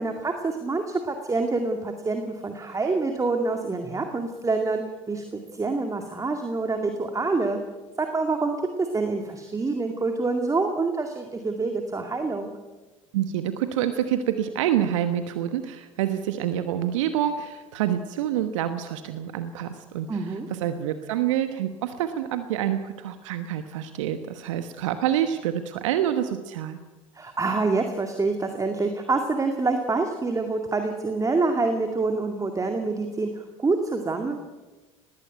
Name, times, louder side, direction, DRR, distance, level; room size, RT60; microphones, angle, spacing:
voice 1, 0.0-7.6 8.0-12.5 20.1-20.5 27.2-33.3 33.6-34.4, right 3 dB, 20° right, 5 dB, 2.3 m, -26 dB
voice 2, 13.1-26.8, right 10 dB, 70° right, 9 dB, 1.2 m, -27 dB
19.5 x 16.5 x 9.1 m, 1.2 s
figure-of-eight pair, 70°, 17 cm